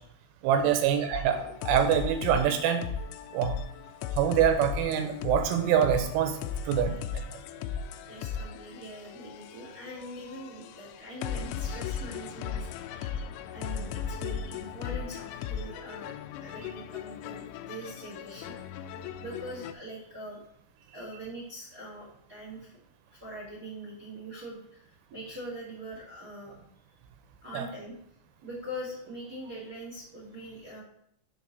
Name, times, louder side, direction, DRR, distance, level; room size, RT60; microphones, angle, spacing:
voice 1, 0.4-2.8 3.3-3.6 4.1-6.4 6.6-7.2 27.5-27.7, right 9 dB, 80° right, 6 dB, 3.2 m, -25 dB
sound 1, 1.1-19.7, left 7 dB, 85° left, 2.9 m, -37 dB
voice 2, 8.1-13.1 13.5-18.5 18.8-18.9 19.2-20.4 20.9-22.8 23.1-26.5 27.4-28.0 28.4-30.8, right 1 dB, 50° right, -6 dB, 1.0 m, -43 dB
7.2 x 4.1 x 6.4 m, 0.69 s
omnidirectional pair, 5.8 m